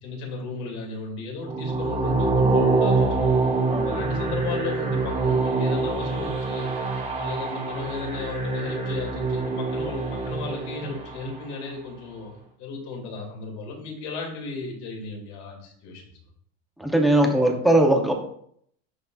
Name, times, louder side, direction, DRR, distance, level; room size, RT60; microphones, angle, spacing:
voice 1, 0.0-3.5 3.8-6.7 7.1-12.3 12.6-16.1, left 4 dB, 70° left, 0 dB, 2.3 m, -35 dB
sound 1, 1.4-11.5, right 3 dB, 20° right, 1.1 m, -25 dB
voice 2, 16.8-18.1, right 1 dB, ahead, 2 dB, 0.5 m, -20 dB
11.5 x 3.8 x 2.3 m, 0.66 s
supercardioid pair, 160°, 36 cm